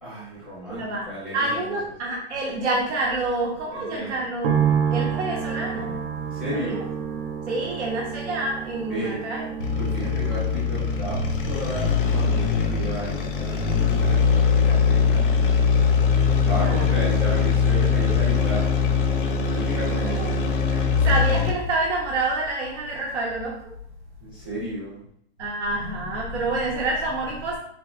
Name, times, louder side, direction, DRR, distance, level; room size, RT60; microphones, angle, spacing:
voice 1, 0.0-1.7 3.7-4.2 6.3-6.8 8.9-9.2 9.8-15.7 16.4-18.8 19.5-20.3 24.2-25.0, right 1 dB, 5° right, -11 dB, 0.7 m, -33 dB
voice 2, 0.7-4.5 4.9-6.0 6.5-6.8 7.5-9.5 16.6-17.0 20.1-20.3 20.7-23.7 25.4-27.6, right 2 dB, 85° right, -2 dB, 0.8 m, -28 dB
sound 1, 4.4-19.7 20.0-20.8, right 7 dB, 55° right, 0.4 m, -32 dB
sound 2, 9.6-21.7, left 6 dB, 50° left, 0.4 m, -21 dB
3.8 x 2.1 x 2.4 m, 0.70 s
hypercardioid pair, 170°, 34 cm